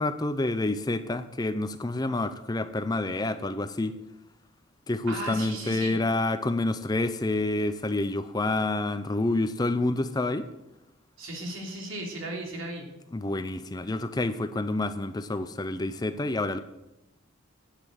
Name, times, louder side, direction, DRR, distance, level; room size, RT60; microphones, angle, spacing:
voice 1, 0.0-3.9 4.9-10.5 13.1-16.6, left 2 dB, 20° left, 11 dB, 0.5 m, -28 dB
voice 2, 5.1-5.9 11.2-12.9, right 1 dB, 70° right, 0 dB, 3.3 m, -36 dB
10.5 x 8.4 x 7.8 m, 0.94 s
head